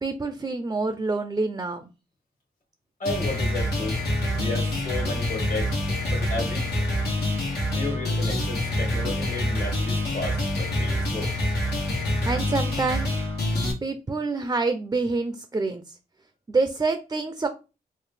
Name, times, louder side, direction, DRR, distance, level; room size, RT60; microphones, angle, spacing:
voice 1, 0.0-1.9 12.2-13.1 13.8-15.9 16.5-17.5, right 3 dB, 20° right, 0.4 m, -27 dB
voice 2, 3.0-4.0 4.4-5.7 6.1-6.7 7.7-11.3, left 2 dB, 55° left, 1.5 m, -33 dB
sound 1, 3.1-13.7, left 1 dB, 85° left, 1.1 m, -26 dB
3.8 x 2.0 x 3.2 m
cardioid pair, 70°, 17 cm